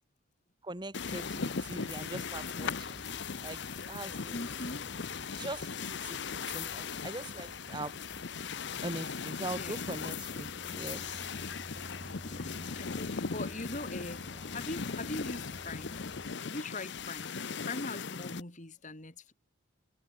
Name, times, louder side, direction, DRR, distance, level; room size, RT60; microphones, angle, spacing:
voice 1, 0.6-3.6 3.9-4.3 5.3-8.0 8.8-11.2, right 2 dB, 20° right, 1.6 m, -42 dB
sound 1, 0.9-18.4, left 5 dB, 55° left, 0.8 m, -38 dB
sound 2, 1.0-16.3, equal, ahead, 4.0 m, -51 dB
voice 2, 4.3-4.9 9.5-10.0 12.2-14.2 14.5-16.0 16.4-19.3, left 2 dB, 35° left, 2.7 m, -41 dB
head